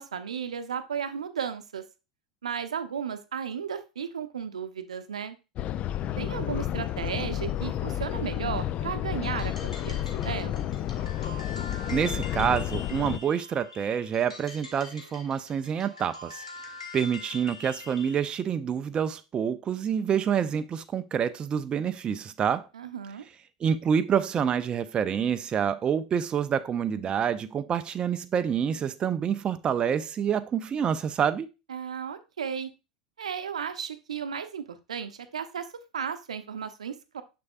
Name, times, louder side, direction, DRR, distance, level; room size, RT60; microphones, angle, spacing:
voice 1, 0.0-1.8 2.4-5.4 6.2-10.7 22.7-23.2 31.7-32.7 33.2-34.6 34.9-35.7 35.9-37.2, right 7 dB, 75° right, 0.7 m, -34 dB
sound 1, 5.6-13.2, left 12 dB, 40° left, 0.4 m, -31 dB
sound 2, 9.2-18.3, left 3 dB, 90° left, 1.2 m, -43 dB
voice 2, 11.9-16.4 16.9-22.7 23.6-31.5, right 8 dB, 25° right, 0.4 m, -27 dB
6.8 x 6.3 x 2.4 m
figure-of-eight pair, 80°, 4 cm